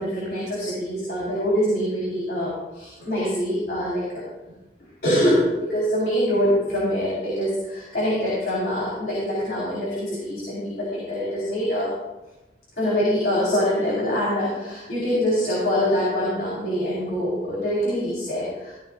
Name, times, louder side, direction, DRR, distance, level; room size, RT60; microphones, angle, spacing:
voice 1, 0.0-4.2 5.0-11.9 12.8-18.7, equal, 55° left, -7 dB, 4.7 m, -24 dB
16.0 x 15.5 x 2.6 m, 1.0 s
head